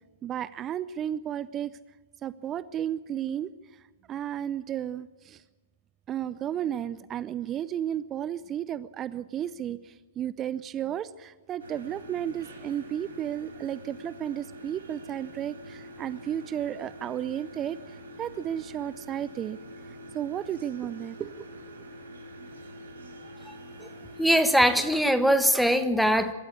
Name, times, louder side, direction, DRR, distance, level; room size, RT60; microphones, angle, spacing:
voice 1, 0.2-1.8 2.2-5.4 6.1-19.6 19.9-21.5, right 10 dB, 25° right, 16 dB, 0.6 m, -33 dB
sound 1, 11.6-24.4, equal, 70° right, 4.2 m, -45 dB
voice 2, 24.2-26.3, equal, ahead, 8 dB, 1.6 m, -22 dB
24.0 x 13.5 x 8.5 m, 1.3 s
figure-of-eight pair, 110°, 0 cm